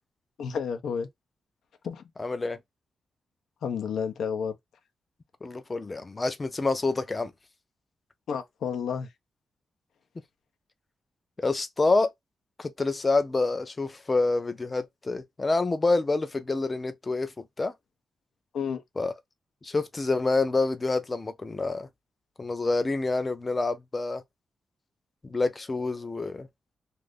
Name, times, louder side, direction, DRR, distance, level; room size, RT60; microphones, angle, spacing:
voice 1, 0.4-1.1 1.8-2.0 3.6-4.5 8.3-9.1 18.5-18.8, left 6 dB, 85° left, 0.6 m, -31 dB
voice 2, 2.2-2.6 5.4-7.3 11.4-12.1 12.6-17.7 19.0-19.1 19.6-21.9 22.4-24.2 25.2-26.5, left 3 dB, 25° left, 0.5 m, -27 dB
2.5 x 2.5 x 3.5 m
wide cardioid pair, 130°, 0 cm